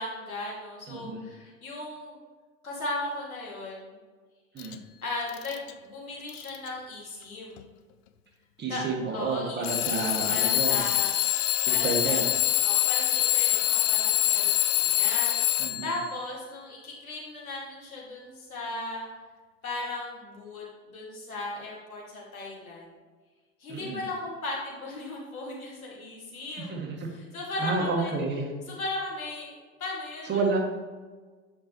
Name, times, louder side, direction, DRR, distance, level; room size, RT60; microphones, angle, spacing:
voice 1, 0.0-2.2 2.6-4.0 5.0-7.8 8.7-8.8 9.1-11.1 11.7-12.3 12.6-15.3 15.8-19.1 19.6-23.0 23.6-26.8 27.1-28.1 28.7-29.5 29.8-30.4, left 2 dB, 85° left, -4 dB, 2.4 m, -37 dB
voice 2, 0.9-1.2 4.5-4.8 8.6-10.8 11.7-12.2 15.6-16.0 23.7-24.0 26.7-27.0 27.6-28.5 30.3-30.6, right 3 dB, 25° right, 0 dB, 1.8 m, -30 dB
Alarm / Clock, 4.6-4.7 5.3-5.7 6.3-6.7 7.6-7.7 9.6-16.0, left 15 dB, 45° left, 0.6 m, -25 dB
8.6 x 6.2 x 3.0 m, 1.4 s
figure-of-eight pair, 85°, 41 cm